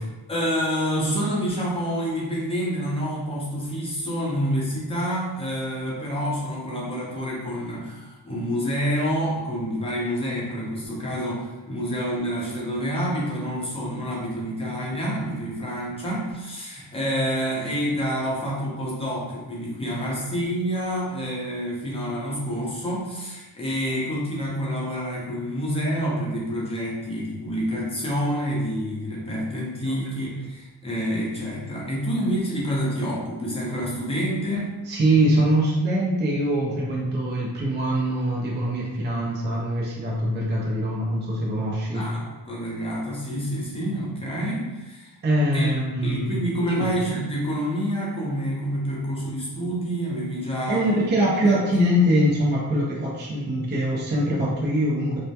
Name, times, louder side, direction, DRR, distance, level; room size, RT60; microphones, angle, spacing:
voice 1, 0.0-34.8 41.9-45.1 45.5-51.0 51.4-51.5, equal, 15° left, -5 dB, 0.6 m, -28 dB
voice 2, 34.9-42.0 45.2-46.3 46.7-46.9 50.7-55.2, right 1 dB, 25° right, -4 dB, 0.4 m, -23 dB
2.2 x 2.1 x 2.7 m, 1.1 s
wide cardioid pair, 100°, 44 cm